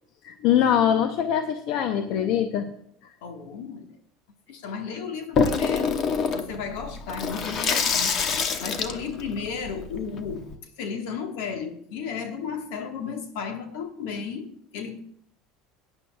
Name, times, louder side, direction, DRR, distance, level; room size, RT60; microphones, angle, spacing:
voice 1, 0.2-2.7, left 9 dB, 60° left, 8 dB, 0.7 m, -23 dB
voice 2, 3.2-4.0 4.5-5.9 6.3-8.2 8.6-10.5 10.8-15.0, left 6 dB, 80° left, 5 dB, 1.5 m, -34 dB
Water tap faucet / Sink (filling or washing), 5.4-10.6, left 5 dB, 45° left, 0.9 m, -26 dB
17.0 x 9.8 x 2.3 m, 0.67 s
supercardioid pair, 130°, 0 cm